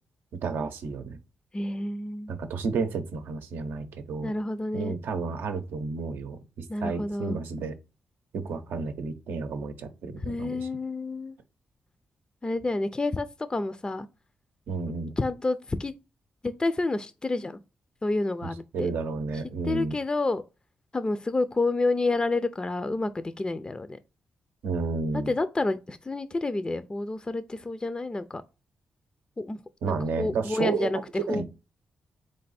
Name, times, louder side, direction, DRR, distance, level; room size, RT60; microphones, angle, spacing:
voice 1, 0.4-1.2 2.3-4.3 4.7-7.8 8.3-10.6 14.7-15.1 18.7-20.0 24.6-25.3 29.8-30.9 31.3-31.4, right 4 dB, 85° right, 0.6 m, -31 dB
voice 2, 1.5-2.3 4.2-5.0 6.7-7.4 10.2-11.4 12.4-14.1 15.2-15.9 16.4-17.6 18.0-18.9 19.6-20.4 20.9-24.0 25.3-28.4 29.4-29.6 29.9-31.0 31.3-31.4, left 2 dB, 25° left, 0.4 m, -29 dB
3.8 x 3.3 x 4.1 m
cardioid pair, 55°, 4 cm